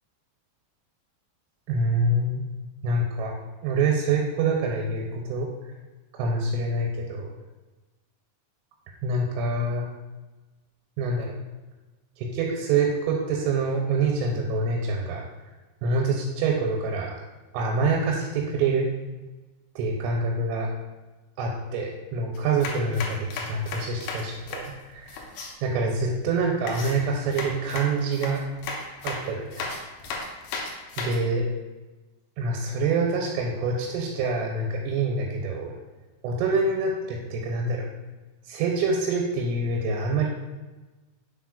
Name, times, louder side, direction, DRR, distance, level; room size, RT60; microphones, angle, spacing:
voice 1, 1.7-2.4 2.8-3.3 3.6-5.5 6.1-7.3 9.0-9.9 11.0-11.3 12.2-15.2 15.8-17.2 17.5-18.9 19.8-20.7 21.4-25.3 25.6-28.4 29.0-29.7 31.0-31.4 32.4-35.8 36.2-37.9 38.5-40.3, right 3 dB, 85° right, 0 dB, 3.2 m, -26 dB
sound 1, 22.3-25.5 26.7-31.2, left 3 dB, 80° left, 2.5 m, -35 dB
6.7 x 5.8 x 2.4 m, 1.2 s
omnidirectional pair, 5.8 m